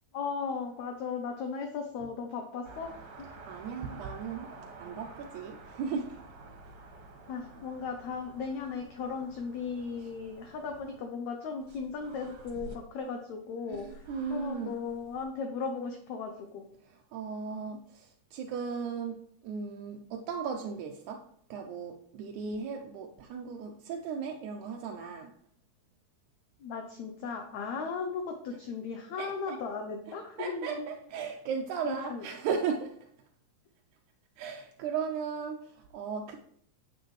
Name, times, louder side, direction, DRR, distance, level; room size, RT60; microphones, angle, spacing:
voice 1, 0.1-2.9 3.2-3.3 7.3-14.1 14.3-16.6 26.6-30.9 31.8-32.3, left 5 dB, 75° left, 5 dB, 1.7 m, -36 dB
sound 1, 2.6-11.0 11.6-12.8 13.7-15.2, right 3 dB, 55° right, 2.3 m, -50 dB
voice 2, 3.5-4.5 4.8-6.2 10.0-10.1 13.7-14.8 16.8-21.2 21.5-25.3 29.2-29.6 30.4-33.1 34.4-36.4, right 6 dB, 75° right, 3 dB, 1.8 m, -36 dB
9.2 x 8.5 x 3.2 m, 0.67 s
omnidirectional pair, 4.0 m